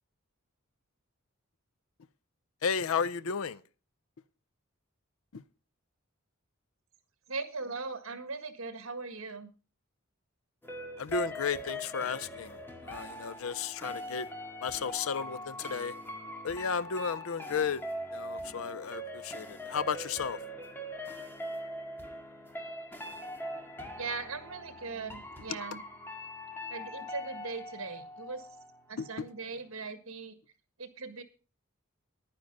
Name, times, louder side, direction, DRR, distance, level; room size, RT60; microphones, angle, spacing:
voice 1, 2.6-3.6 5.3-5.4 11.0-14.3 14.6-15.9 16.4-17.8 18.1-20.4 25.5-25.6 29.0-29.3, left 6 dB, 70° left, 0.5 m, -33 dB
voice 2, 7.3-9.5 24.0-25.8 26.7-28.5 28.9-30.4 30.8-31.2, right 4 dB, 70° right, 1.7 m, -39 dB
sound 1, 10.6-29.3 29.6-29.7, equal, 10° left, 1.8 m, -42 dB
10.5 x 9.7 x 5.3 m
head